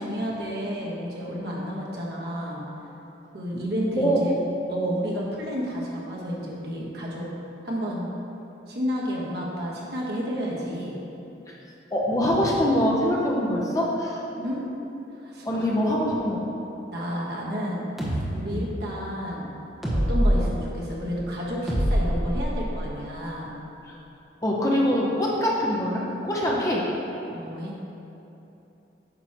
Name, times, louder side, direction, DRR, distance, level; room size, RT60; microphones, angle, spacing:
voice 1, 0.0-2.6 3.3-4.3 4.7-7.3 7.6-8.1 8.7-11.0 14.4-14.6 15.1-15.7 16.9-19.5 19.9-23.6 27.3-27.8, equal, 60° right, -5 dB, 1.3 m, -31 dB
voice 2, 11.9-14.2 15.4-16.4 18.5-18.6 23.9-24.0 24.4-26.8, equal, 20° left, -4 dB, 0.8 m, -24 dB
sound 1, 18.0-18.2 19.8-20.4 21.7-22.8, equal, ahead, 1.1 m, -23 dB
9.1 x 3.1 x 5.9 m, 2.9 s
head